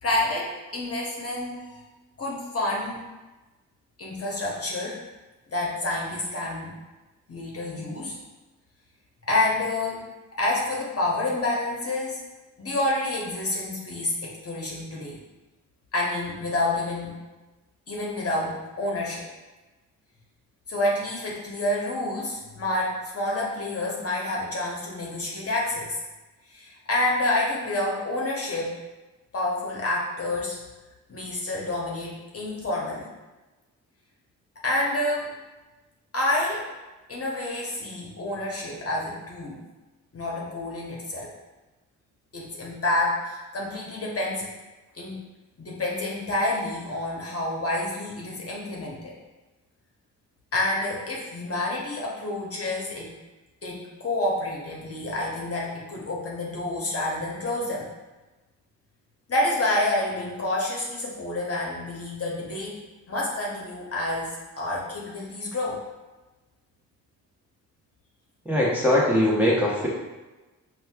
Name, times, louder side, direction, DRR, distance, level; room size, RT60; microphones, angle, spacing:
voice 1, 0.0-1.8 2.2-3.1 4.0-5.0 5.5-6.8 7.3-8.2 9.3-10.1 10.4-12.2 12.6-15.2 15.9-17.2 17.9-19.2 20.7-26.0 26.5-28.7 29.3-30.6 31.1-33.1 34.6-35.3 36.1-36.7 37.1-39.6 40.1-41.3 42.3-44.5 44.9-45.2 45.6-49.1 50.5-53.1 53.6-57.9 59.3-62.8 63.1-64.3 64.6-65.8, left 2 dB, 40° left, -3 dB, 0.9 m, -28 dB
voice 2, 68.4-69.9, left 1 dB, 5° right, -6 dB, 0.9 m, -21 dB
4.1 x 2.3 x 2.3 m, 1.1 s
cardioid pair, 60°, 35 cm